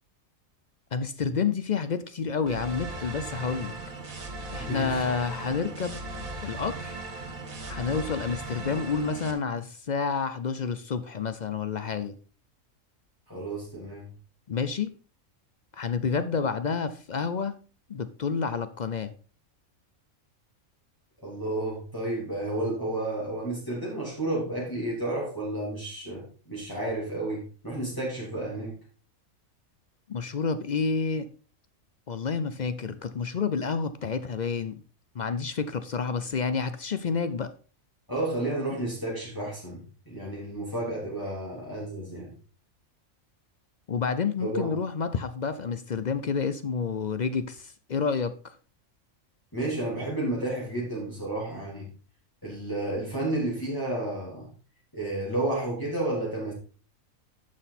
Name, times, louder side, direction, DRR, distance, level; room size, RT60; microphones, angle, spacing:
voice 1, 0.9-3.7 4.5-6.0 6.4-6.9 7.7-12.2 14.5-14.9 15.7-17.5 17.9-19.1 30.1-31.3 32.1-34.8 35.1-37.5 43.9-48.5, left 5 dB, 55° left, 0.5 m, -29 dB
sound 1, 2.5-9.3, right 2 dB, 75° right, 2.1 m, -38 dB
voice 2, 4.6-5.0 13.3-14.1 21.2-28.8 38.1-42.3 44.4-44.7 49.5-51.9 52.4-54.5 54.9-56.5, right 1 dB, 15° left, 3.2 m, -31 dB
11.0 x 6.2 x 4.1 m
omnidirectional pair, 1.4 m